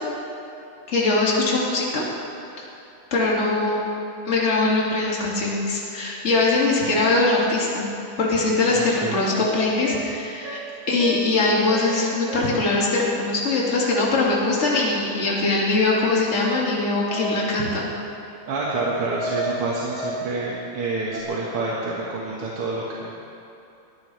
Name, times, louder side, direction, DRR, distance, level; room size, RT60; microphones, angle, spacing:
voice 1, 0.9-2.0 2.6-2.7 3.1-3.9 4.3-7.9 8.2-10.6 10.9-17.9, left 3 dB, 30° left, -4 dB, 2.6 m, -22 dB
voice 2, 8.7-9.2 17.6-17.7 18.5-23.1, right 3 dB, 90° right, -5 dB, 2.6 m, -28 dB
sound 1, 8.9-9.0 9.3-11.4 11.7-12.0 12.3-12.7 13.7-14.8 16.4-17.6 18.7-20.3 21.1-21.2, right 2 dB, 55° right, 3.5 m, -33 dB
21.5 x 15.5 x 3.4 m, 2.9 s
omnidirectional pair, 2.4 m